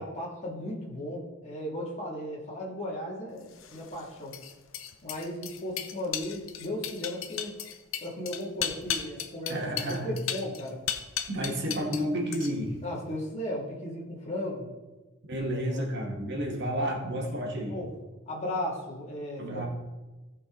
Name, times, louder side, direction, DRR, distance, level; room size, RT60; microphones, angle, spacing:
voice 1, 0.0-4.4 5.0-7.5 8.0-10.8 12.8-14.7 15.6-15.8 16.2-16.4 17.7-17.9 18.3-19.7, left 1 dB, 35° left, -5 dB, 2.7 m, -36 dB
sound 1, 3.5-12.0 12.3-12.8, left 9 dB, 85° left, 0.8 m, -35 dB
voice 2, 9.5-10.1 11.3-12.8 15.2-17.8 19.4-19.7, equal, 60° right, 0 dB, 2.1 m, -31 dB
16.0 x 5.4 x 4.0 m, 1.2 s
head